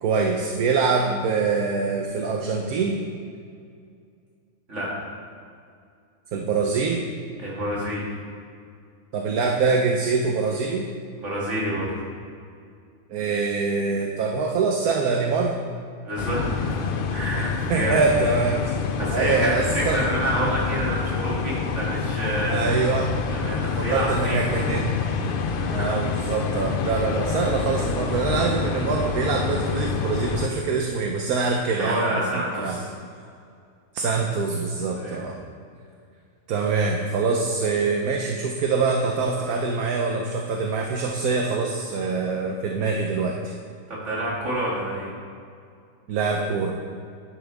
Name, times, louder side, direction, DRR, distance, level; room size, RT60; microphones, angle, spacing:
voice 1, 0.0-3.0 6.3-7.1 9.1-10.9 13.1-15.5 17.4-18.6 19.1-20.0 22.5-23.1 23.5-24.9 25.7-32.8 33.9-35.4 36.5-43.5 46.1-46.8, right 4 dB, 75° right, 1 dB, 1.3 m, -24 dB
voice 2, 7.4-8.0 11.2-11.9 16.0-16.8 17.1-18.0 19.0-22.7 23.3-24.7 25.5-26.0 31.7-32.9 35.0-35.2 43.9-45.1, right 1 dB, 50° right, -6 dB, 2.9 m, -28 dB
sound 1, 16.2-30.5, left 5 dB, 60° left, 0.6 m, -27 dB
12.0 x 10.0 x 3.5 m, 2.3 s
omnidirectional pair, 1.6 m